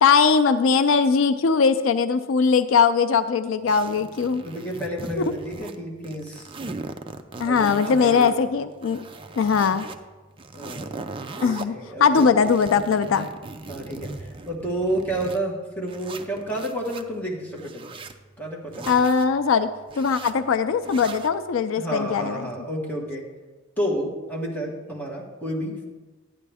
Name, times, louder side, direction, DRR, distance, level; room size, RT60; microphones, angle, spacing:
voice 1, 0.0-4.4 7.4-9.0 9.4-9.9 11.4-13.3 18.9-19.7 20.0-22.5, left 5 dB, 80° left, 11 dB, 0.4 m, -20 dB
sound 1, 3.7-5.8 6.0-8.3 8.7-10.0 10.4-11.7 12.2-15.4 15.9-17.0 17.5-18.2 18.7-19.3 19.9-20.3 20.8-21.3, right 3 dB, 25° right, 0.4 m, -39 dB
voice 2, 4.4-6.5 7.4-8.3 10.5-11.0 11.3-12.5 13.7-18.0 18.4-18.9 21.8-23.2 23.8-25.9, right 1 dB, 10° left, -3 dB, 1.4 m, -30 dB
11.5 x 9.4 x 3.5 m, 1.3 s
head